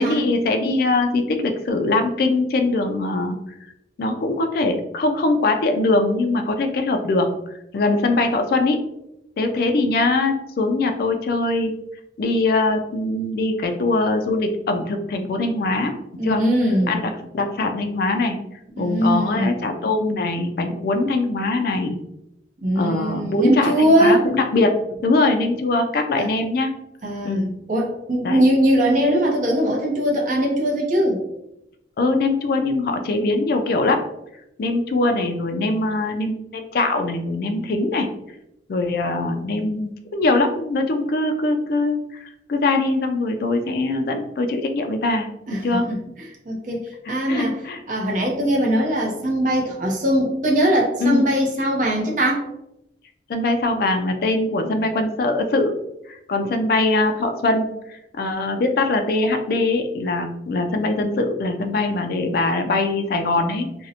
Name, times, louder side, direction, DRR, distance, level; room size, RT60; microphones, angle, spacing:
voice 1, 0.0-3.4 4.0-8.8 9.4-11.7 12.2-15.9 16.2-16.5 16.9-18.4 18.8-22.0 22.8-26.8 27.2-27.5 28.2-28.4 32.0-34.0 34.6-38.1 38.7-45.3 45.6-45.9 47.3-47.8 51.0-51.2 53.3-55.8 56.1-63.9, left 2 dB, 55° left, 5 dB, 0.3 m, -22 dB
voice 2, 16.2-17.0 18.8-19.5 22.6-24.2 26.2-26.3 27.0-31.2 45.5-46.0 46.5-47.5 47.9-52.5, right 1 dB, 45° right, -1 dB, 0.5 m, -20 dB
2.5 x 2.0 x 2.7 m, 0.82 s
head